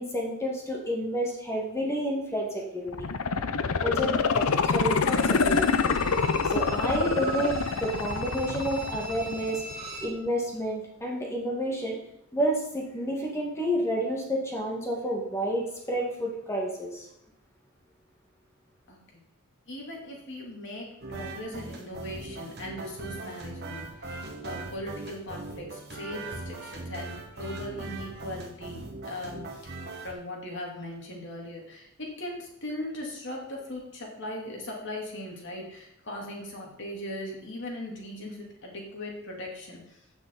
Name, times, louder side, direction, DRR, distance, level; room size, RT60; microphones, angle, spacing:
voice 1, 0.0-3.1 3.8-5.7 6.4-9.6 10.0-12.0 12.3-17.1, equal, 10° left, -1 dB, 1.7 m, -30 dB
sound 1, 2.9-9.9 10.3-10.4, left 5 dB, 80° left, 0.7 m, -26 dB
Bowed string instrument, 5.0-10.2 10.5-10.6, right 3 dB, 30° right, 4.6 m, -40 dB
voice 2, 18.9-19.2 19.7-24.2 24.4-29.8 30.0-40.0, left 1 dB, 55° left, -1 dB, 2.9 m, -39 dB
sound 2, 21.0-30.1, right 2 dB, 50° right, 1.5 m, -40 dB
15.0 x 6.1 x 4.0 m, 0.76 s
head